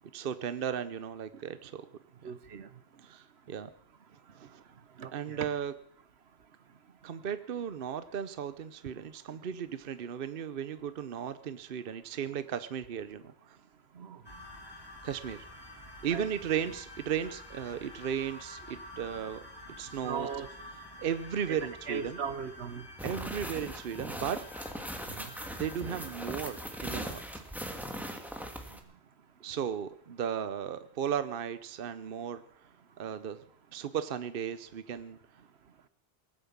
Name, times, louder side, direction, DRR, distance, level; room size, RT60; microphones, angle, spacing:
voice 1, 0.1-1.9 2.2-2.3 3.0-3.7 4.3-4.6 5.1-5.7 7.0-13.6 15.0-15.4 16.0-19.4 19.8-20.3 21.0-22.2 23.0-24.4 25.5-27.2 29.4-32.4 33.0-33.4 33.7-35.2, right 8 dB, 60° right, 12 dB, 0.9 m, -35 dB
voice 2, 2.2-2.7 5.0-5.5 14.0-14.2 16.1-16.2 20.0-20.5 21.5-21.6 21.9-22.8 25.2-25.3, right 6 dB, 80° right, 13 dB, 1.2 m, -38 dB
sound 1, 14.2-27.4, left 1 dB, 20° left, 2.1 m, -49 dB
sound 2, 23.0-28.8, equal, ahead, 1.6 m, -40 dB
19.5 x 9.3 x 7.3 m, 0.68 s
omnidirectional pair, 1.1 m